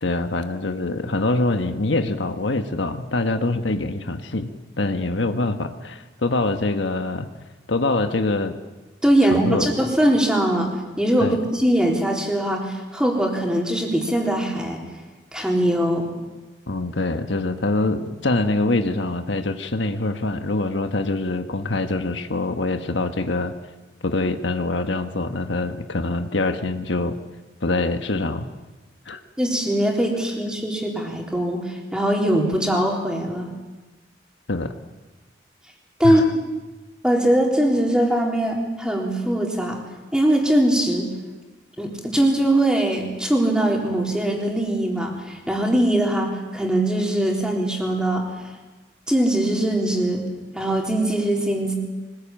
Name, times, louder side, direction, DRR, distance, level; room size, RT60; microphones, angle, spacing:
voice 1, 0.0-7.3 7.7-8.6 9.2-9.7 11.2-11.4 16.7-23.5 24.0-27.2 27.6-28.5 29.1-29.2 34.5-34.7 36.0-36.3, left 2 dB, 80° left, 7 dB, 1.4 m, -24 dB
voice 2, 9.0-14.8 15.3-16.1 29.4-33.5 36.0-36.2 37.0-39.8 40.1-41.1 41.8-48.3 49.1-50.2 50.5-51.7, right 1 dB, 5° right, 0 dB, 3.8 m, -21 dB
24.5 x 20.0 x 8.9 m, 1.2 s
head